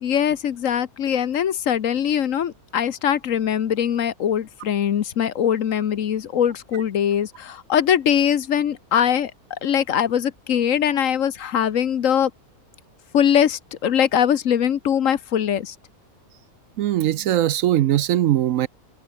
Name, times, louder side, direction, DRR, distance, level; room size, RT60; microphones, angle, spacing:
voice 1, 0.0-12.3 13.1-15.7, left 9 dB, 65° left, 1.3 m, -22 dB
voice 2, 16.8-18.7, right 12 dB, 70° right, 0.9 m, -20 dB
omnidirectional pair, 1.5 m